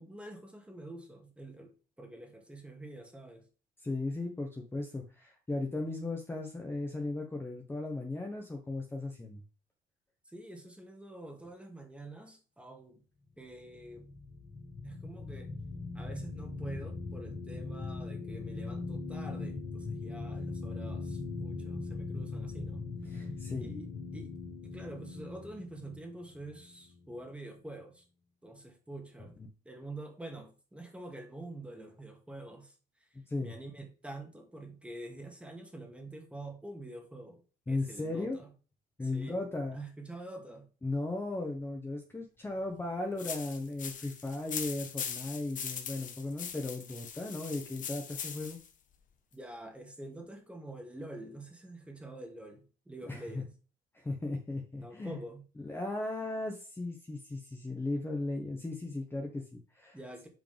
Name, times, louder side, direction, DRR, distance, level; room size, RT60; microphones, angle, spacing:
voice 1, 0.0-3.5 10.3-13.0 13.4-14.1 14.8-15.5 15.9-22.8 23.2-23.3 23.6-24.4 24.6-28.0 28.4-29.4 29.7-32.7 33.4-37.4 37.7-38.5 39.0-39.4 39.7-40.7 49.3-53.5 54.8-55.5 59.9-60.3, right 1 dB, 5° right, 2.1 m, -46 dB
voice 2, 3.8-9.4 23.1-23.7 33.3-33.5 37.7-38.4 39.0-39.8 40.8-48.6 53.0-53.4 53.9-55.2 55.6-60.0, left 2 dB, 15° left, 1.4 m, -36 dB
sound 1, 13.6-27.3, left 3 dB, 75° left, 3.3 m, -40 dB
sound 2, 43.2-48.7, left 7 dB, 50° left, 1.4 m, -41 dB
9.1 x 5.0 x 3.5 m
cardioid pair, 110°, 17 cm